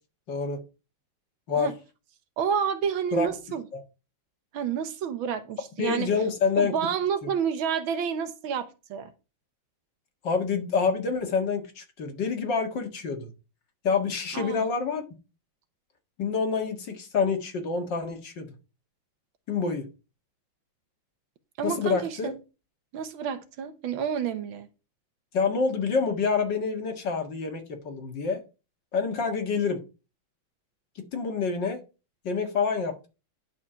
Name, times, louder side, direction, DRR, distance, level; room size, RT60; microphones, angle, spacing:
voice 1, 0.3-0.6 1.5-1.7 3.1-3.3 3.7-3.8 5.8-6.8 10.2-13.3 13.8-15.0 16.2-18.5 19.5-19.9 21.6-22.3 25.3-28.4 28.9-29.8 31.1-31.8 32.2-33.1, left 5 dB, 60° left, 2.3 m, -27 dB
voice 2, 2.4-3.6 4.5-6.1 6.6-9.1 14.3-14.7 21.6-22.4 22.9-24.7, right 7 dB, 75° right, 1.7 m, -29 dB
10.5 x 4.7 x 5.7 m
omnidirectional pair, 2.3 m